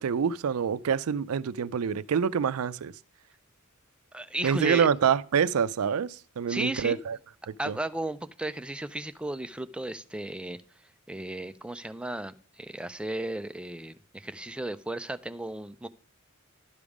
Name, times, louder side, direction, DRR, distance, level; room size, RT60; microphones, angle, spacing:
voice 1, 0.0-2.9 4.4-7.2 7.7-7.8, right 7 dB, 80° right, 0.4 m, -26 dB
voice 2, 4.1-4.9 6.5-7.0 7.6-10.6 11.1-15.9, right 1 dB, 5° right, 0.4 m, -34 dB
12.0 x 5.3 x 4.8 m
head